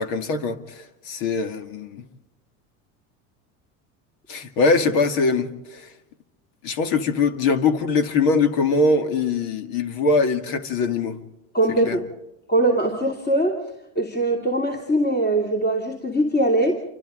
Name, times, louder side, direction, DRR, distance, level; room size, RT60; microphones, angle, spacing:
voice 1, 0.0-2.0 4.3-5.9 6.6-11.2 11.8-12.0, left 4 dB, 75° left, 2.3 m, -22 dB
voice 2, 11.5-12.1 12.5-13.6 14.0-16.7, right 1 dB, 25° left, 2.9 m, -21 dB
27.5 x 25.0 x 3.8 m
supercardioid pair, 115°, 38 cm